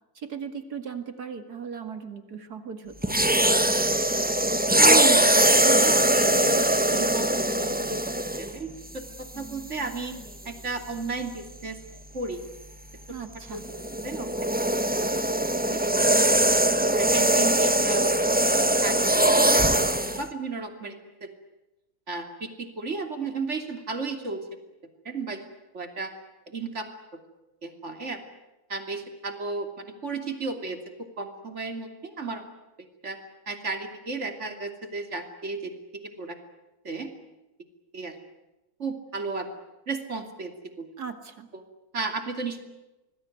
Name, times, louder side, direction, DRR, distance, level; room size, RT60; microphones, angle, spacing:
voice 1, 0.2-3.2 13.1-13.7 41.0-41.5, right 6 dB, 55° right, 8 dB, 2.6 m, -38 dB
sound 1, 3.0-8.6 9.4-9.6 13.5-20.2, right 1 dB, 5° right, 0.8 m, -21 dB
voice 2, 4.8-8.0 8.4-10.1 10.4-11.8 12.1-12.4 13.5-13.6 14.0-14.5 15.7-16.1 17.0-18.2 18.8-19.1 19.5-19.7 20.2-20.9 21.2-21.3 22.1-24.4 25.0-25.4 25.7-26.1 26.5-26.9 27.6-28.2 28.7-30.8 31.2-32.5 33.0-33.2 33.5-35.7 36.2-36.4 36.8-37.1 37.9-38.1 38.8-39.5 39.9-40.5 40.8-40.9 41.5-41.6 41.9-42.6, right 3 dB, 35° right, 5 dB, 3.1 m, -33 dB
26.5 x 20.0 x 9.3 m, 1.0 s
omnidirectional pair, 2.1 m